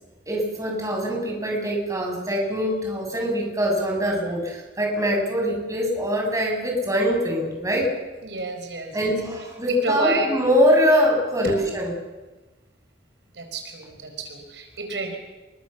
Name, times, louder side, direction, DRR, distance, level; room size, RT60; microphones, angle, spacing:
voice 1, 0.3-7.9 8.9-11.9, equal, 20° right, 0 dB, 7.5 m, -23 dB
voice 2, 8.2-9.2 9.7-10.3 13.3-15.2, right 2 dB, 85° right, 4 dB, 5.0 m, -29 dB
28.0 x 24.0 x 7.2 m, 1.2 s
head